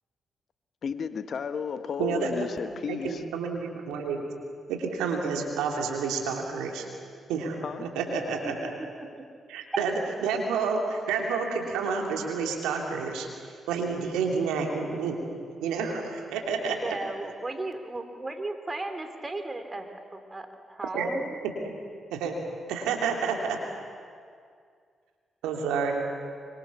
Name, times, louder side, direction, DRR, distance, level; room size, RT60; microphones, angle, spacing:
voice 1, 0.8-3.2 7.6-8.0, left 6 dB, 60° left, 1.3 m, -33 dB
voice 2, 2.0-2.4 2.9-4.2 4.7-6.8 7.3-8.7 9.5-9.9 10.2-13.3 13.7-15.2 15.6-17.0 20.9-21.1 21.6-21.7 22.1-22.4 22.7-23.6 25.4-26.0, right 5 dB, 80° right, 3.0 m, -29 dB
voice 3, 8.4-9.2 9.7-9.9 16.8-21.4, right 2 dB, 25° right, 3.4 m, -36 dB
25.0 x 24.5 x 7.2 m
hypercardioid pair, 40°, 0 cm